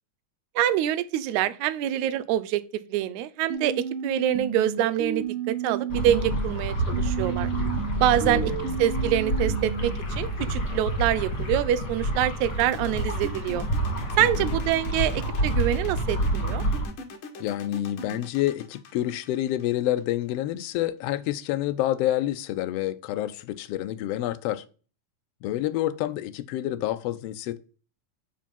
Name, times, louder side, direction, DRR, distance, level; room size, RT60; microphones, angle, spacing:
voice 1, 0.6-2.6 2.9-7.5 8.0-8.5 8.8-13.7 14.2-16.6, right 11 dB, 85° right, 1.9 m, -25 dB
sound 1, 3.5-6.5 6.9-9.9, right 7 dB, 65° right, 1.4 m, -32 dB
sound 2, 5.9-16.9, right 1 dB, 40° left, 2.2 m, -28 dB
voice 2, 8.2-8.7 14.2-14.5 17.4-24.6 25.4-27.6, left 13 dB, 85° left, 1.4 m, -28 dB
sound 3, 12.6-20.4, left 3 dB, 55° left, 1.5 m, -41 dB
5.0 x 4.7 x 5.3 m
omnidirectional pair, 3.3 m